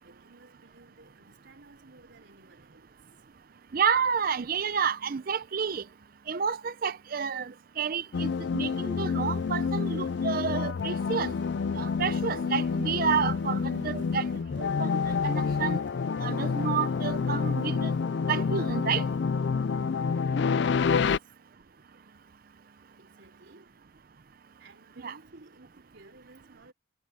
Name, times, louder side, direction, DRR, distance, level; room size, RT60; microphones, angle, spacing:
voice 1, 0.0-3.0 13.8-14.1 20.9-21.3 23.0-23.8 24.6-26.7, right 2 dB, 60° right, 3.7 m, -56 dB
voice 2, 3.7-5.8 6.3-11.3 11.8-14.3 14.6-15.8 16.2-17.9 18.3-19.0 25.0-25.2, right 6 dB, 45° right, 0.5 m, -30 dB
sound 1, 8.1-21.2, left 5 dB, 55° left, 0.4 m, -28 dB
head